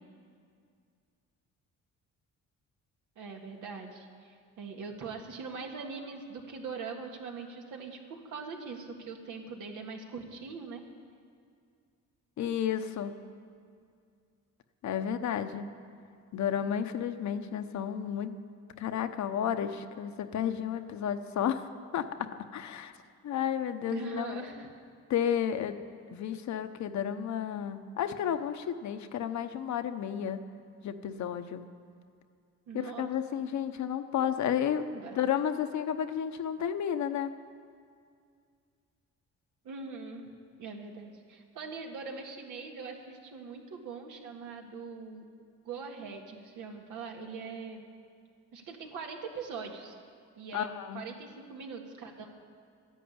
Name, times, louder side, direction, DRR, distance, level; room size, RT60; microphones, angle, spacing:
voice 1, 3.2-10.8 23.9-24.7 32.7-33.1 34.9-35.2 39.6-40.3 40.6-45.2 45.7-47.9 48.5-49.9 50.4-52.4, right 5 dB, 85° right, 2 dB, 1.9 m, -42 dB
voice 2, 12.4-13.1 14.8-15.7 16.3-18.3 18.8-21.7 21.9-22.9 23.2-24.4 25.1-25.8 26.1-30.4 30.8-31.6 32.7-34.8 35.1-37.3 50.5-51.0, left 9 dB, 65° left, 9 dB, 0.9 m, -32 dB
12.5 x 11.0 x 8.7 m, 2.3 s
cardioid pair, 90°, 30 cm